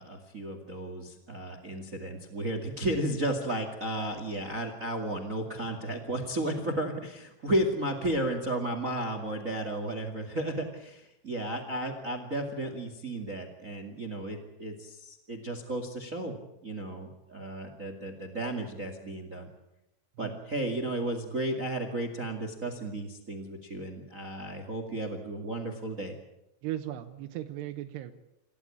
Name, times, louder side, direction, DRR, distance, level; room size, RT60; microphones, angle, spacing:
voice 1, 0.0-16.3 16.6-19.5 20.2-26.1, right 1 dB, 45° right, 8 dB, 1.0 m, -33 dB
voice 2, 26.6-28.1, right 13 dB, 75° right, 6 dB, 2.7 m, -37 dB
28.0 x 15.0 x 8.6 m, 0.89 s
omnidirectional pair, 5.5 m